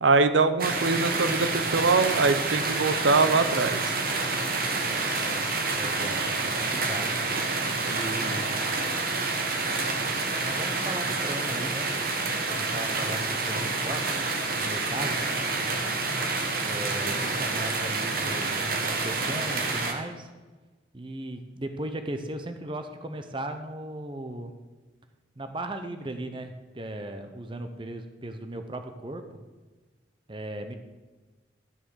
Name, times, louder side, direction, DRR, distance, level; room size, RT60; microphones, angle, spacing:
voice 1, 0.0-3.8, right 3 dB, 80° right, 11 dB, 0.7 m, -23 dB
sound 1, 0.6-19.9, right 3 dB, 50° right, 1.4 m, -28 dB
voice 2, 5.7-7.3 7.9-8.5 10.0-11.9 12.5-14.2 14.5-15.2 16.6-20.3 20.9-24.6 25.4-29.4 30.3-30.8, right 1 dB, 25° right, 7 dB, 0.8 m, -37 dB
12.0 x 6.4 x 6.4 m, 1.3 s
head